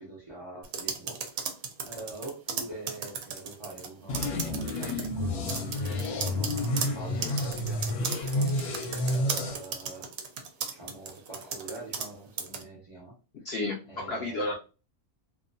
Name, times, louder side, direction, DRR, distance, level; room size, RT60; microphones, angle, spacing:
voice 1, 0.0-1.5 1.8-10.1 10.7-13.2 13.9-14.5, right 2 dB, 45° right, 0.4 m, -44 dB
sound 1, 0.6-3.9 4.1-5.1 5.5-12.1 12.4-12.6, right 6 dB, 70° right, 0.9 m, -35 dB
sound 2, 4.1-9.5, left 1 dB, 80° left, 1.1 m, -30 dB
voice 2, 13.4-14.5, left 2 dB, 65° left, 0.6 m, -32 dB
2.6 x 2.2 x 2.5 m
omnidirectional pair, 1.6 m